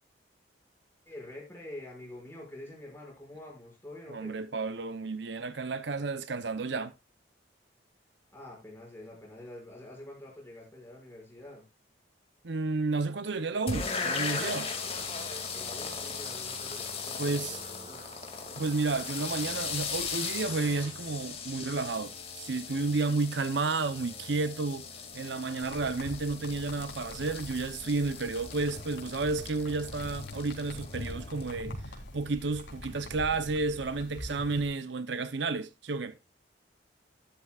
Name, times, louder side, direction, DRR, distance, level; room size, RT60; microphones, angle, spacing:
voice 1, 1.0-4.4 8.3-11.7 15.5-18.0, left 1 dB, 10° left, 6.0 m, -46 dB
voice 2, 4.1-6.9 12.4-14.7 17.2-17.6 18.6-24.9 25.1-31.8 32.1-36.2, right 3 dB, 75° right, 0.7 m, -31 dB
sound 1, 13.7-31.5, left 5 dB, 30° left, 2.3 m, -38 dB
sound 2, 14.4-20.7, right 1 dB, 30° right, 4.1 m, -51 dB
sound 3, 25.6-34.7, left 1 dB, 75° left, 3.6 m, -44 dB
12.5 x 12.0 x 2.4 m
head